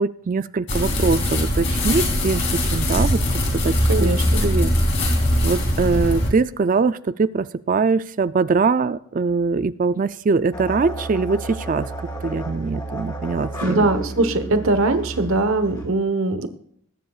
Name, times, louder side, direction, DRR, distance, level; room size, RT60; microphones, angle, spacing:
voice 1, 0.0-3.2 3.5-4.1 4.4-4.7 5.4-11.9 12.2-13.9, right 4 dB, 35° right, 14 dB, 0.3 m, -22 dB
sound 1, 0.7-6.3, left 1 dB, 55° left, 2.9 m, -21 dB
voice 2, 3.9-4.4 13.6-16.5, right 2 dB, 70° right, 9 dB, 1.1 m, -21 dB
sound 2, 10.5-15.9, right 2 dB, 20° left, 2.8 m, -32 dB
20.5 x 10.0 x 2.4 m, 0.68 s
head